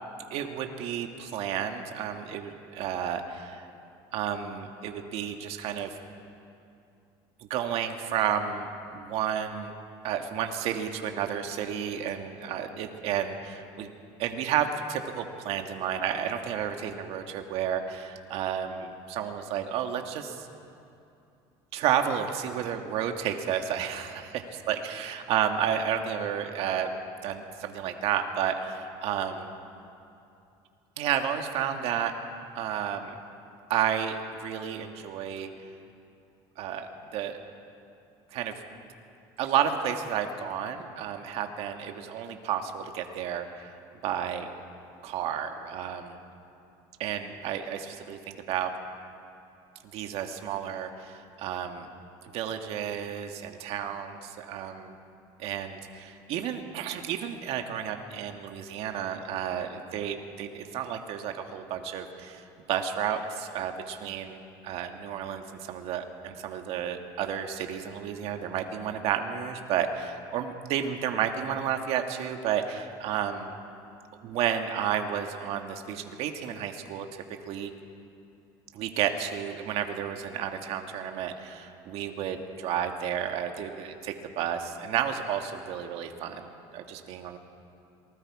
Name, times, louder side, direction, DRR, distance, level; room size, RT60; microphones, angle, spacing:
voice 1, 0.3-3.7 4.1-6.0 7.5-9.7 10.0-13.9 14.2-20.5 21.7-24.2 24.7-26.9 27.2-29.5 31.0-32.1 32.5-33.2 33.7-35.5 36.6-37.4 38.3-38.5 39.4-43.7 44.0-44.5 45.0-46.2 47.0-48.7 49.9-51.9 52.3-55.0 55.4-64.4 64.6-73.6 74.2-77.7 78.7-87.4, right 9 dB, 65° right, 5 dB, 1.7 m, -31 dB
27.0 x 19.5 x 4.9 m, 2.6 s
cardioid pair, 130°, 11 cm